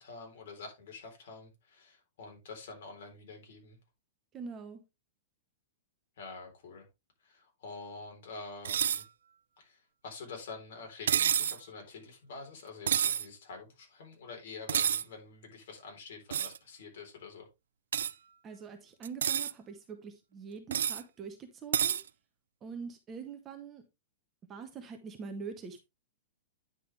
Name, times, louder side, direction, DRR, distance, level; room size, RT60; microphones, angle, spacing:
voice 1, 0.0-3.8 6.2-6.9 7.2-9.1 9.6-17.5, left 4 dB, 50° left, 3.8 m, -47 dB
voice 2, 4.3-4.8 18.4-22.0 22.6-23.8 24.5-25.8, right 5 dB, 15° right, 0.8 m, -44 dB
sound 1, 8.6-9.0 11.1-11.6 12.9-13.2 14.7-15.0 16.3-16.6 17.9-18.1 19.0-19.5 20.7-21.0 21.7-22.0, right 9 dB, 85° right, 0.4 m, -28 dB
9.6 x 5.7 x 3.2 m
supercardioid pair, 175°, 0 cm